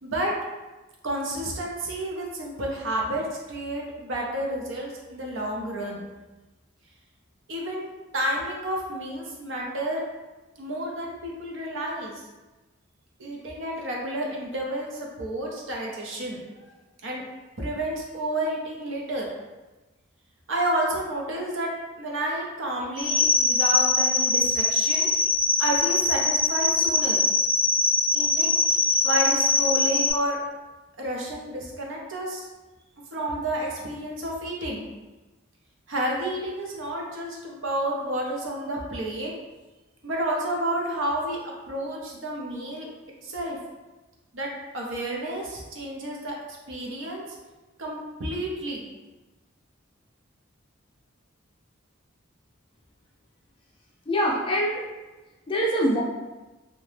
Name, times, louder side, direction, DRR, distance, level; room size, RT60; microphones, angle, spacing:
voice 1, 0.0-0.3 1.0-6.0 7.5-10.0 10.6-12.2 13.2-16.4 17.0-17.2 17.6-19.3 20.5-21.7 22.0-25.1 25.6-27.2 28.1-30.4 31.0-32.5 33.1-34.9 35.9-39.3 40.0-42.9 43.2-43.6 44.3-44.5 44.7-46.3 46.7-47.2 47.8-48.9, right 1 dB, 65° right, -1 dB, 0.6 m, -30 dB
sound 1, 23.0-30.1, left 3 dB, 70° left, 0.6 m, -22 dB
voice 2, 54.1-54.9 55.5-56.0, equal, 25° left, -2 dB, 0.3 m, -24 dB
2.7 x 2.0 x 3.2 m, 1.1 s
head